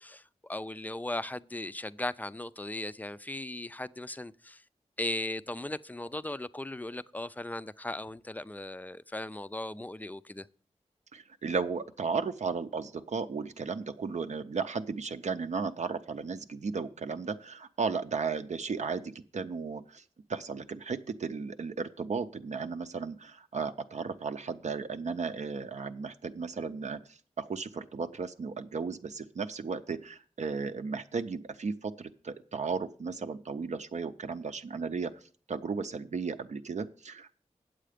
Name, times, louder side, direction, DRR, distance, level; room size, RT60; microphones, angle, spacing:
voice 1, 0.0-4.6 5.0-10.5, left 1 dB, 15° left, 0.3 m, -37 dB
voice 2, 11.1-20.0 20.3-37.3, right 5 dB, 70° right, 0.5 m, -35 dB
9.0 x 7.6 x 5.0 m
wide cardioid pair, 95°, 13 cm